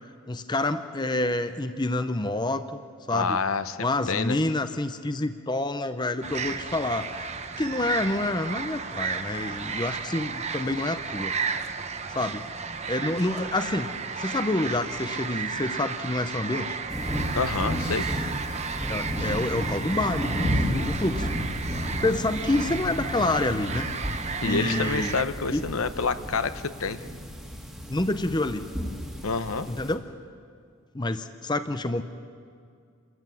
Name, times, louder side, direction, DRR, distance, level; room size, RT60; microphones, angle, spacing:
voice 1, 0.3-2.8 3.1-3.4 3.8-7.3 7.6-11.4 12.1-12.4 12.9-13.9 14.2-16.8 18.9-21.3 22.0-23.9 24.4-25.2 25.5-25.6 27.9-28.7 29.7-30.0 30.9-32.0, left 2 dB, 20° left, 10 dB, 0.6 m, -28 dB
voice 2, 3.1-4.4 17.3-18.1 24.4-27.0 29.2-29.7, left 4 dB, 70° left, 12 dB, 0.9 m, -28 dB
sound 1, 6.2-25.2, right 5 dB, 30° right, 0.9 m, -33 dB
sound 2, 16.9-29.9, equal, ahead, 1.8 m, -32 dB
28.0 x 14.0 x 9.2 m, 2.3 s
head